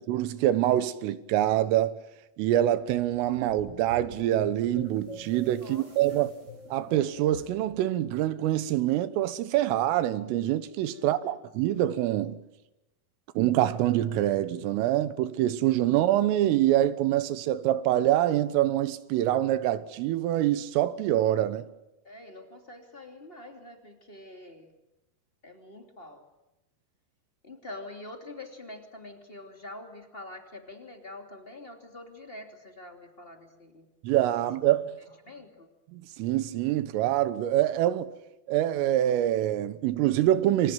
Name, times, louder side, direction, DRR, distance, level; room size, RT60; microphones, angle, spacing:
voice 1, 0.0-2.0 2.4-6.3 6.7-12.4 13.4-21.7 34.0-34.9 35.9-38.1 38.5-40.7, right 13 dB, 80° right, 3.7 m, -25 dB
sound 1, 2.6-7.8, right 1 dB, 25° right, 4.3 m, -46 dB
voice 2, 5.5-6.2 10.9-11.4 22.0-24.7 25.4-26.2 27.4-33.9 35.2-35.7, left 2 dB, 20° left, 1.6 m, -45 dB
28.5 x 26.0 x 7.9 m
omnidirectional pair, 5.9 m